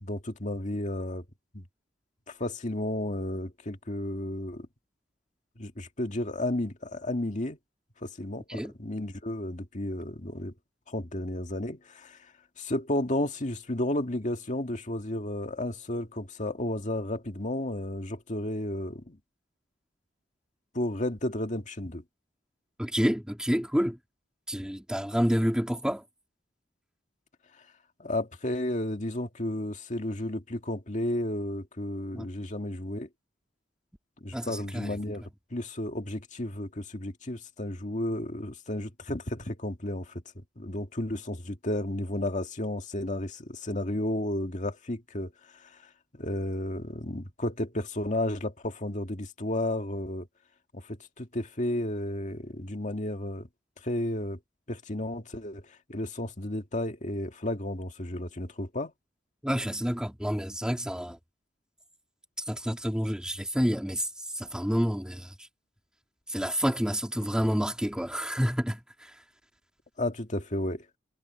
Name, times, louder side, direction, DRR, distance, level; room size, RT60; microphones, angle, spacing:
voice 1, 0.0-1.3 1.5-1.7 2.3-4.7 5.6-7.6 8.0-10.5 10.9-19.2 20.7-22.0 28.0-33.1 34.2-35.2 35.5-40.2 40.6-50.3 50.7-53.5 53.8-54.4 54.7-58.9 70.0-70.9, left 1 dB, 40° left, 2.0 m, -33 dB
voice 2, 22.8-24.0 24.5-26.0 32.1-32.3 34.3-35.0 59.4-61.2 62.4-65.5 66.3-69.2, equal, 5° right, 2.7 m, -29 dB
head